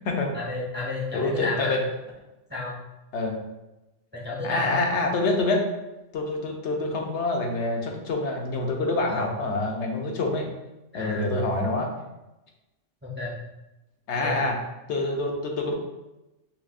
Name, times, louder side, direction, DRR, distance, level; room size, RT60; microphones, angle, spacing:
voice 1, 0.3-1.7 2.5-2.8 4.1-4.8 9.1-9.3 10.9-11.3 13.0-13.3 14.2-14.5, left 2 dB, 20° right, -4 dB, 0.3 m, -31 dB
voice 2, 1.1-1.8 3.1-3.4 4.4-5.6 6.1-10.5 10.9-11.9 14.1-14.5 14.9-15.7, left 2 dB, 70° left, 1 dB, 1.0 m, -26 dB
5.9 x 2.0 x 2.4 m, 0.98 s
omnidirectional pair, 1.2 m